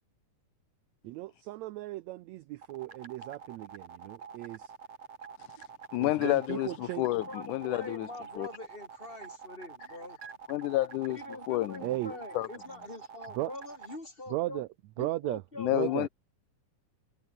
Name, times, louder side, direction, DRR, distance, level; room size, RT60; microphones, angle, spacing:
voice 1, 1.0-4.7 6.0-7.1 11.8-12.1 13.3-13.5 14.3-14.7 15.0-15.4 15.7-16.1, right 17 dB, 80° right, 1.6 m, -36 dB
sound 1, 2.6-14.0, right 6 dB, 50° right, 3.6 m, -46 dB
voice 2, 5.9-8.1 8.4-8.5 10.5-11.2 11.5-11.8 12.3-12.5 15.6-16.1, left 16 dB, 80° left, 2.1 m, -29 dB
voice 3, 6.5-10.2 11.1-14.6 15.0-16.1, left 2 dB, 15° left, 4.2 m, -44 dB
omnidirectional pair, 3.7 m